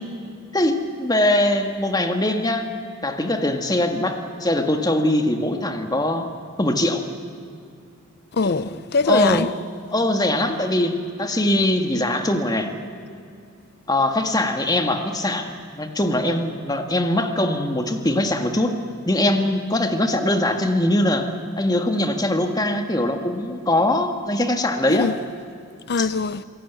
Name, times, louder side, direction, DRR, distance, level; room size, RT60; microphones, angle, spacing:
voice 1, 0.5-2.7 3.0-6.3 6.6-7.0 9.1-9.4 9.9-12.7 13.9-18.7 19.0-21.3 21.6-25.1 26.0-26.1, left 1 dB, 15° left, 1.6 m, -22 dB
voice 2, 8.3-9.5 24.9-25.2 25.9-26.4, left 4 dB, 45° left, 0.5 m, -22 dB
27.5 x 18.0 x 9.3 m
head